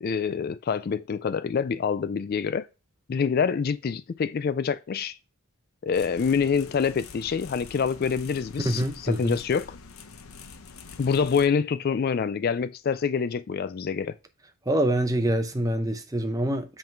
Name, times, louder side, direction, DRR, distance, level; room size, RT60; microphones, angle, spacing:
voice 1, 0.0-2.7 3.1-5.2 5.8-9.7 11.0-14.1, left 6 dB, 45° left, 0.3 m, -26 dB
sound 1, 5.9-11.5, left 5 dB, 80° left, 0.7 m, -45 dB
voice 2, 8.6-9.4 14.7-16.8, right 1 dB, 15° right, 0.7 m, -26 dB
7.8 x 3.7 x 4.5 m
head